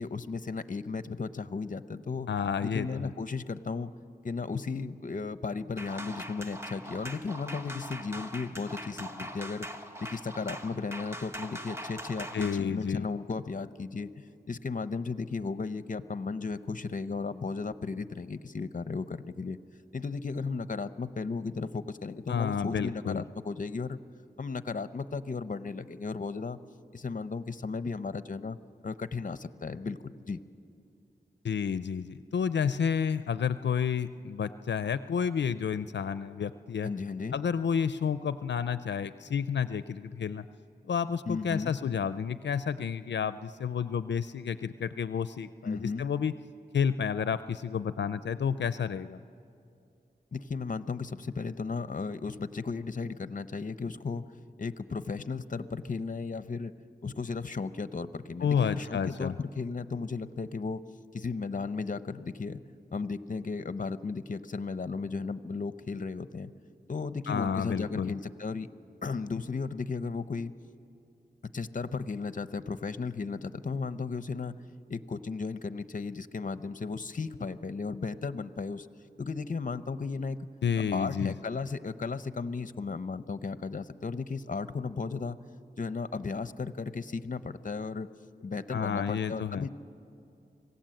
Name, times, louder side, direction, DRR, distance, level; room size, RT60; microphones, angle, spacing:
voice 1, 0.0-2.3 2.6-3.9 4.2-9.7 10.0-19.6 19.9-24.0 24.4-26.6 26.9-28.6 28.8-30.4 36.8-37.4 41.3-41.8 45.6-46.1 50.3-54.3 54.6-56.7 57.0-60.8 61.1-62.6 62.9-66.5 66.9-68.7 69.0-70.5 71.4-74.6 74.9-78.9 79.2-80.4 80.9-85.4 85.8-88.1 88.4-89.7, left 4 dB, 50° left, 13 dB, 0.7 m, -35 dB
voice 2, 2.3-3.1 12.3-13.1 22.3-23.2 31.4-36.9 37.3-40.5 40.8-46.3 46.7-49.2 58.4-59.3 67.3-68.1 80.6-81.3 88.7-89.7, left 7 dB, 90° left, 13 dB, 0.4 m, -30 dB
sound 1, 5.8-12.6, equal, 15° right, 1.3 m, -42 dB
26.0 x 17.0 x 7.7 m, 2.6 s
wide cardioid pair, 65°, 18 cm